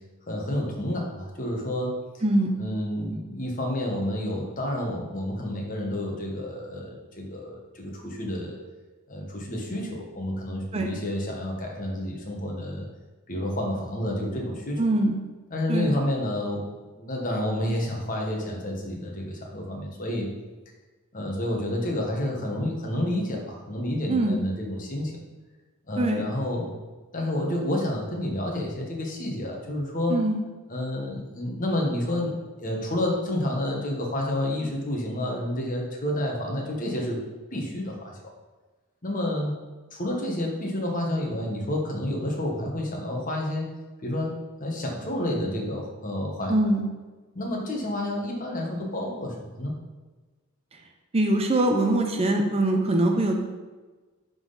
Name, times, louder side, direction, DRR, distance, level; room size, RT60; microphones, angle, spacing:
voice 1, 0.3-2.0 2.6-8.6 9.1-12.9 13.3-14.8 15.5-16.7 16.9-20.3 21.1-25.1 25.9-26.7 27.1-30.2 30.7-32.3 32.6-37.2 37.5-38.2 39.0-39.6 39.9-43.7 44.0-44.3 44.6-46.7 47.3-49.7, left 1 dB, 40° left, 0 dB, 1.3 m, -29 dB
voice 2, 14.8-15.1 15.7-15.9 24.1-24.4 26.0-26.3 30.1-30.4 46.5-46.9 51.1-53.4, right 1 dB, 30° right, 3 dB, 0.6 m, -23 dB
10.5 x 3.9 x 4.0 m, 1.3 s
head